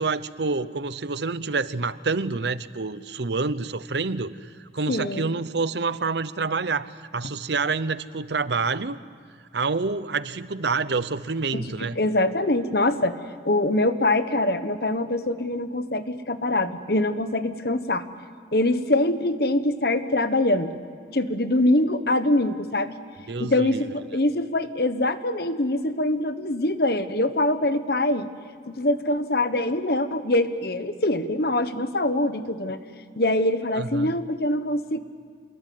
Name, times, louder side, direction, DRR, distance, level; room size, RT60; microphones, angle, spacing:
voice 1, 0.0-9.0 9.5-12.0 23.3-23.9 33.7-34.1, right 4 dB, 70° right, 15 dB, 0.8 m, -27 dB
voice 2, 4.9-5.3 11.9-13.2 13.4-18.0 18.5-20.8 21.1-22.9 23.4-28.3 28.7-32.8 33.2-35.0, left 1 dB, 55° left, 10 dB, 1.3 m, -24 dB
28.0 x 21.0 x 9.5 m, 2.1 s
head